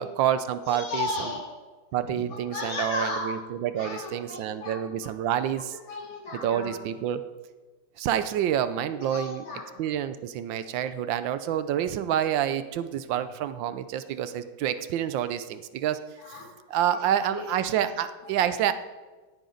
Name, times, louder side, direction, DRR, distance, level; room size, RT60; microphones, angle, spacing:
voice 1, 0.0-1.1 1.9-5.8 6.4-7.2 8.0-9.4 9.8-16.0 16.7-18.7, right 10 dB, 75° right, 12 dB, 1.3 m, -28 dB
voice 2, 0.7-1.5 2.0-3.3 3.8-5.1 5.6-6.8 8.9-9.7 16.2-16.5 16.9-17.5, left 3 dB, 80° left, 0 dB, 3.1 m, -35 dB
17.0 x 9.2 x 3.9 m, 1.3 s
omnidirectional pair, 2.1 m